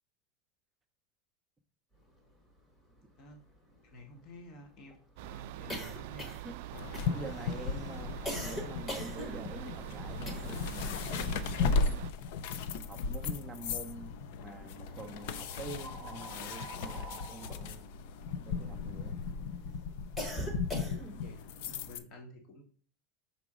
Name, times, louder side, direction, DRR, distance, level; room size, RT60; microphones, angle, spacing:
sound 1, 2.6-2.7 2.9-3.0 3.3-10.8 11.1-12.6 13.0-13.9 14.7-19.2 19.6-21.3, equal, 15° left, 1.2 m, -43 dB
voice 1, 3.1-3.4 3.8-6.4 20.3-22.6, left 1 dB, 35° left, 1.2 m, -52 dB
sound 2, 5.2-12.1, right 15 dB, 60° right, 0.3 m, -44 dB
sound 3, 6.7-22.0, left 5 dB, 60° left, 0.5 m, -36 dB
voice 2, 7.0-12.1 12.9-17.9 18.4-19.2, right 3 dB, 5° right, 0.6 m, -47 dB
6.0 x 3.9 x 4.9 m
supercardioid pair, 175°, 0 cm